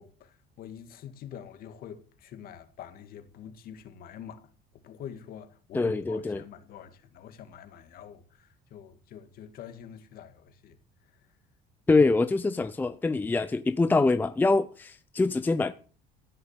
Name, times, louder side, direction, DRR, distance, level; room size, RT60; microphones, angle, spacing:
voice 1, 0.0-10.8 11.0-11.2, left 9 dB, 55° left, 2.0 m, -46 dB
voice 2, 5.7-6.4 11.9-15.7, left 3 dB, 10° left, 0.6 m, -24 dB
15.5 x 6.7 x 8.9 m
cardioid pair, 145°, 18 cm